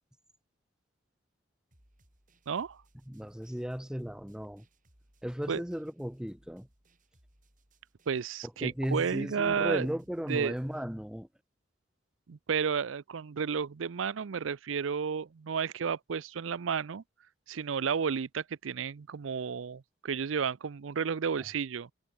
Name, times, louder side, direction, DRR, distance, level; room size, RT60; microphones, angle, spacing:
sound 1, 1.7-10.8, right 1 dB, 40° right, 6.6 m, -67 dB
voice 1, 2.5-2.8 5.5-5.6 8.1-9.9 10.3-10.5 12.3-17.0 17.5-21.9, right 6 dB, 85° right, 0.5 m, -32 dB
voice 2, 3.1-4.7 5.2-6.7 8.6-11.3, equal, 5° right, 0.8 m, -35 dB
head